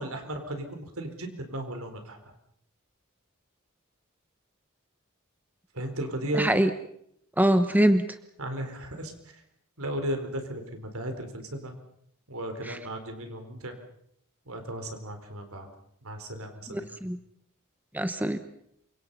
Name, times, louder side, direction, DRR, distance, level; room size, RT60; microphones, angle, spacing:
voice 1, 0.0-2.2 5.7-6.7 8.4-9.4 9.8-11.7 12.3-13.7 14.5-15.7 16.0-16.9, right 1 dB, 65° right, 6 dB, 4.3 m, -35 dB
voice 2, 6.3-6.7 7.4-8.0 12.6-12.8 16.7-17.2 17.9-18.4, right 1 dB, 10° right, 9 dB, 1.0 m, -23 dB
28.0 x 25.0 x 5.6 m, 0.73 s
head